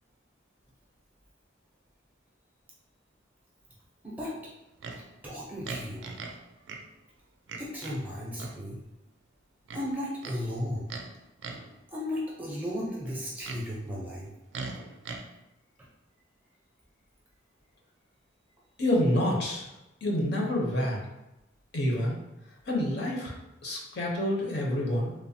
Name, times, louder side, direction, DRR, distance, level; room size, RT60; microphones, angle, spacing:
Livestock farm animals working animals, 4.8-5.0 5.6-6.4 6.7-6.8 7.5-8.0 8.4-8.6 9.7-10.4 10.9-11.1 11.4-11.7 13.1-13.6 14.5-15.2, right 4 dB, 60° right, 0.3 m, -39 dB
voice 1, 4.9-6.0 7.6-8.8 9.7-10.9 11.9-14.3, left 1 dB, 10° right, -5 dB, 0.5 m, -35 dB
voice 2, 18.8-19.7 20.0-21.0 21.7-22.2 22.7-23.3 23.6-25.1, left 1 dB, 55° left, -1 dB, 0.6 m, -27 dB
3.2 x 2.0 x 2.6 m, 0.94 s
head